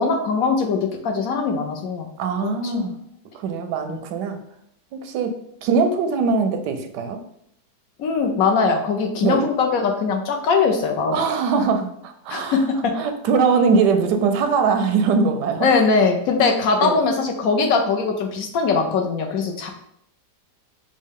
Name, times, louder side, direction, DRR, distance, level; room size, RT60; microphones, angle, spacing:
voice 1, 0.0-2.1 2.4-2.9 3.9-4.0 8.0-11.1 12.3-12.9 15.6-19.7, left 4 dB, 70° left, 2 dB, 0.9 m, -21 dB
voice 2, 2.2-3.0 3.3-4.4 4.9-7.2 9.2-9.4 11.1-12.6 13.0-15.7 16.8-17.0, right 5 dB, 90° right, 6 dB, 1.2 m, -21 dB
6.2 x 2.2 x 3.6 m, 0.73 s
omnidirectional pair, 1.8 m